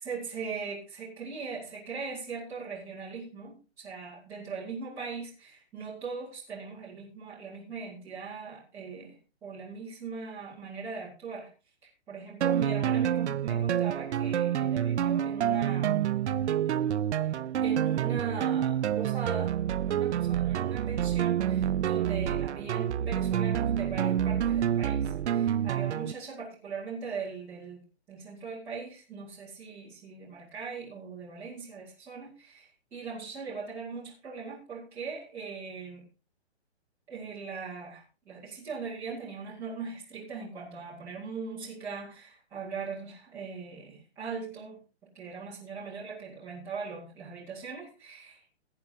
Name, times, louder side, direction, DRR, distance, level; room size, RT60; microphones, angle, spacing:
voice 1, 0.0-11.5 11.8-16.1 17.2-17.3 17.6-19.6 19.8-27.8 28.1-36.0 37.1-44.8 45.1-48.6, right 5 dB, 10° right, -9 dB, 2.0 m, -40 dB
sound 1, 12.4-26.1, right 10 dB, 85° right, 0.6 m, -28 dB
17.0 x 9.5 x 2.7 m, 0.31 s
hypercardioid pair, 175°, 34 cm